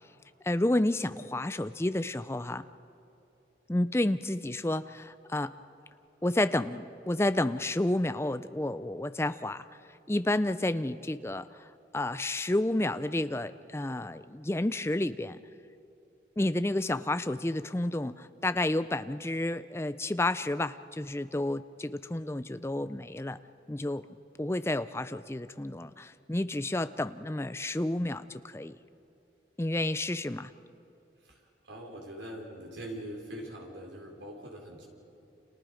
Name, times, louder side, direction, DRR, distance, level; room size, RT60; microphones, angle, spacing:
voice 1, 0.4-2.6 3.7-5.5 6.2-9.6 10.1-11.7 11.9-15.4 16.4-23.4 23.7-24.0 24.4-28.8 29.6-30.5, left 1 dB, 15° left, 12 dB, 0.5 m, -30 dB
voice 2, 31.2-34.9, right 1 dB, 90° right, 0 dB, 4.5 m, -43 dB
29.5 x 27.5 x 5.1 m, 2.7 s
head